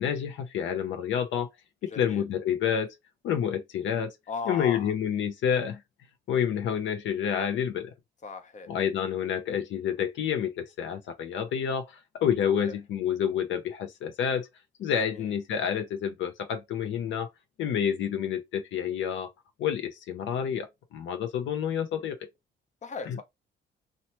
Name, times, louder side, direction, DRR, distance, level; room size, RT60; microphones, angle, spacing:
voice 1, 0.0-1.5 1.8-2.9 3.2-4.1 4.5-5.8 6.3-7.9 8.7-14.5 14.8-17.3 17.6-19.3 19.6-22.2 23.1-23.2, left 8 dB, 75° left, 0.5 m, -29 dB
voice 2, 1.9-2.2 4.3-4.9 8.2-8.7 12.6-12.7 15.1-15.3 22.8-23.2, left 5 dB, 35° left, 0.7 m, -37 dB
2.9 x 2.2 x 2.8 m
cardioid pair, 90°, 20 cm